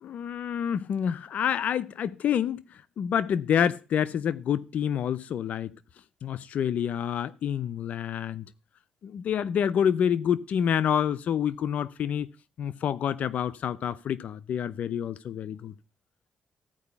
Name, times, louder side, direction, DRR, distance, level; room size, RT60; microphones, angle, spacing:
voice 1, 0.0-2.6 3.0-5.7 6.2-8.5 9.0-12.3 12.6-15.7, left 8 dB, 70° left, 0.6 m, -28 dB
14.5 x 4.8 x 7.0 m
supercardioid pair, 60°, 3 cm